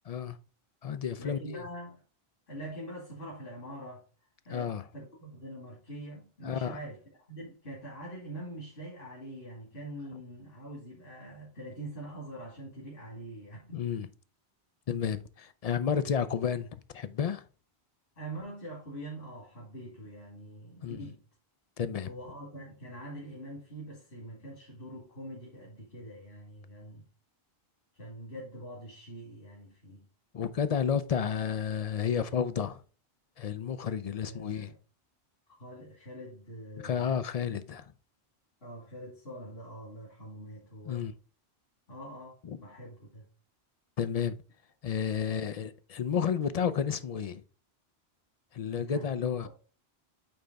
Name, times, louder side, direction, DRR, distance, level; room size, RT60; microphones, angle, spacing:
voice 1, 0.1-0.4 0.8-1.6 4.5-4.8 6.4-6.8 13.7-14.1 14.9-17.4 20.8-21.1 21.8-22.1 30.3-32.8 33.4-34.7 36.8-37.9 40.9-41.1 42.4-42.6 44.0-44.4 44.8-47.4 48.5-49.5, left 7 dB, 50° left, 0.4 m, -31 dB
voice 2, 1.2-2.0 2.5-4.1 4.4-7.0 7.3-13.8 18.2-21.2 22.0-27.0 27.9-30.1 34.1-34.8 35.6-37.2 38.6-41.1 41.9-43.3 45.2-45.6 48.7-49.5, right 1 dB, 70° left, 2.6 m, -44 dB
8.8 x 3.4 x 3.9 m
omnidirectional pair, 1.1 m